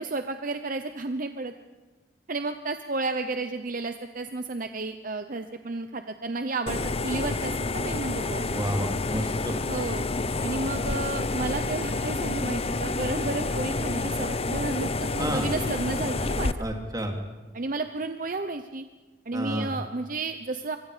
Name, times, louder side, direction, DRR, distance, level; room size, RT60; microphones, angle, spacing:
voice 1, 0.0-1.5 2.3-8.5 9.7-10.0 10.4-16.6 17.5-18.9 19.3-20.8, right 3 dB, 50° right, 8 dB, 0.9 m, -32 dB
sound 1, 6.7-16.5, left 3 dB, 35° left, 0.8 m, -29 dB
voice 2, 8.5-9.6 15.2-15.5 16.6-17.1 19.3-19.7, right 1 dB, 20° right, 2 dB, 3.1 m, -30 dB
25.5 x 24.5 x 5.1 m, 1.3 s
head